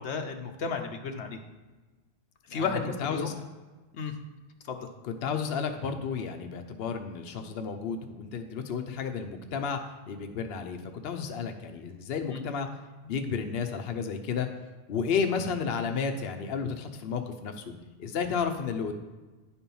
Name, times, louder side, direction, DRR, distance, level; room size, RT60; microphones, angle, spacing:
voice 1, 0.0-1.4 2.5-3.3 3.9-4.1 4.7-4.9 12.3-12.4, left 5 dB, 90° left, 5 dB, 1.1 m, -33 dB
voice 2, 2.5-3.3 5.0-9.8 10.1-10.8 11.0-12.7 13.0-14.5 14.9-17.7 18.0-18.9, left 6 dB, 65° left, 6 dB, 0.9 m, -32 dB
9.8 x 4.4 x 5.4 m, 1.3 s
omnidirectional pair, 1.1 m